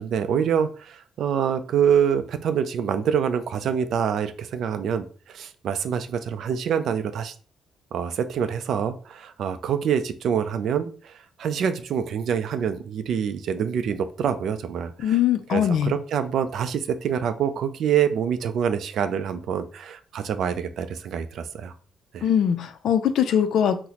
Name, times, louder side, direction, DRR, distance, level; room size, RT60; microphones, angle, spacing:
voice 1, 0.0-7.3 7.9-15.2 15.5-21.7 22.1-22.3, right 8 dB, 70° right, 10 dB, 0.3 m, -26 dB
voice 2, 15.0-15.9 22.2-23.9, left 9 dB, 70° left, 10 dB, 0.4 m, -22 dB
3.9 x 2.0 x 2.8 m, 0.40 s
cardioid pair, 90°, 0 cm